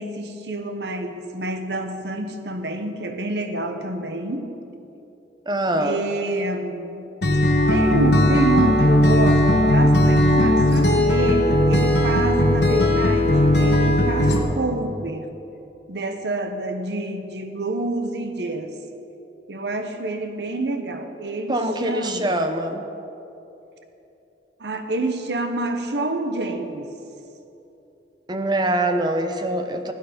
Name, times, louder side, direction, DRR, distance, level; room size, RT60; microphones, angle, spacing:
voice 1, 0.0-4.5 5.8-7.1 7.7-15.3 15.9-18.7 19.5-22.5 24.6-26.9, right 2 dB, 65° right, 7 dB, 1.0 m, -27 dB
voice 2, 5.5-6.0 21.5-22.9 28.3-29.9, right 1 dB, 25° right, 7 dB, 0.8 m, -24 dB
Acoustic guitar, 7.2-14.4, left 1 dB, 65° left, 1.4 m, -17 dB
16.0 x 9.4 x 5.1 m, 2.9 s
head